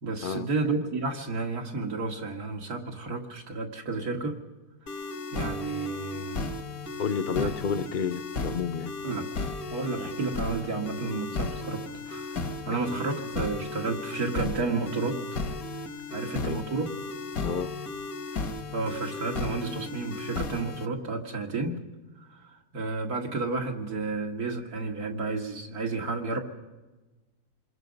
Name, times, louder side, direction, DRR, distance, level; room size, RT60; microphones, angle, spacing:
voice 1, 0.0-4.4 5.3-6.5 7.4-7.5 9.0-9.3 9.7-12.4 12.6-15.2 16.1-16.9 18.3-21.8 22.2-26.4, right 3 dB, 75° right, 2.6 m, -31 dB
sound 1, 4.9-20.9, left 3 dB, 65° left, 1.7 m, -35 dB
voice 2, 7.0-8.9 12.7-12.8 16.4-16.6 17.4-17.7, left 6 dB, 40° left, 0.8 m, -30 dB
27.0 x 22.0 x 5.3 m
omnidirectional pair, 1.6 m